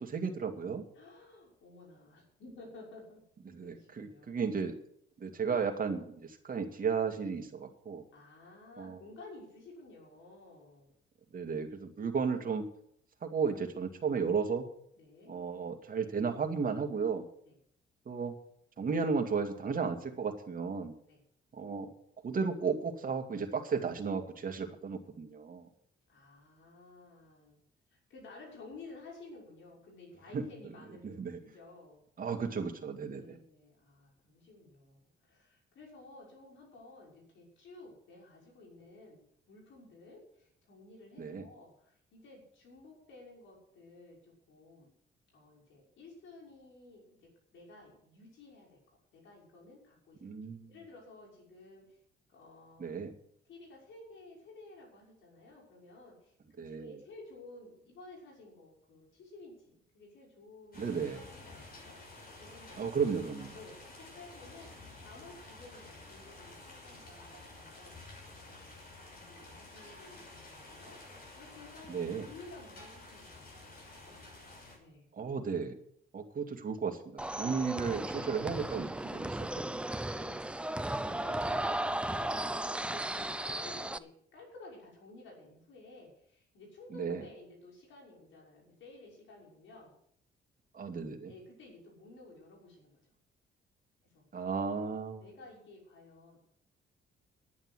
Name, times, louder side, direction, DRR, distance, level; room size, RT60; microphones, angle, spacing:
voice 1, 0.0-0.8 3.5-4.8 5.2-8.0 8.8-9.0 11.3-12.7 13.2-14.7 15.3-17.3 18.1-18.4 18.8-20.9 21.5-21.9 22.2-25.7 30.3-30.5 31.0-31.4 32.2-33.4 41.2-41.5 50.2-50.7 52.8-53.1 56.6-56.9 60.8-61.2 62.8-63.5 71.9-72.3 75.2-75.8 76.1-79.4 79.7-79.8 86.9-87.2 90.7-91.3 94.3-95.2, right 5 dB, 45° right, 4 dB, 2.2 m, -34 dB
voice 2, 0.9-3.2 3.6-4.5 8.1-10.9 14.9-15.4 17.4-17.6 21.1-21.2 26.1-27.6 27.9-32.0 33.2-39.2 39.5-44.9 45.3-50.2 50.7-52.0 52.3-52.9 53.5-62.9 63.3-68.1 68.5-74.3 74.8-75.1 80.1-89.9 91.3-93.0 94.1-94.2 95.2-96.4, left 2 dB, 75° left, -2 dB, 6.1 m, -54 dB
sound 1, 60.7-74.8, left 2 dB, 50° left, 6.0 m, -51 dB
sound 2, 77.2-84.0, right 1 dB, 5° right, 0.6 m, -35 dB
11.0 x 9.5 x 8.0 m, 0.68 s
cardioid pair, 90°, 20 cm